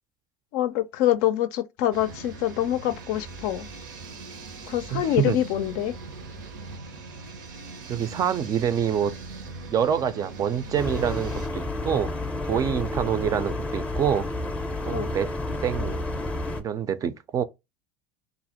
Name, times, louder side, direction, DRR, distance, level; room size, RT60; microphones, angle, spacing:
voice 1, 0.5-3.7 4.7-5.9 14.9-15.1, left 12 dB, 70° left, 0.4 m, -25 dB
sound 1, 1.9-11.5, right 3 dB, 85° right, 0.7 m, -41 dB
voice 2, 4.9-5.4 7.9-9.1 9.7-12.1 12.4-14.3 14.9-15.3 15.6-16.0 16.6-17.4, right 8 dB, 35° right, 0.4 m, -26 dB
sound 2, 10.7-16.6, left 2 dB, 10° left, 0.5 m, -30 dB
2.4 x 2.0 x 2.8 m
hypercardioid pair, 90°, 10 cm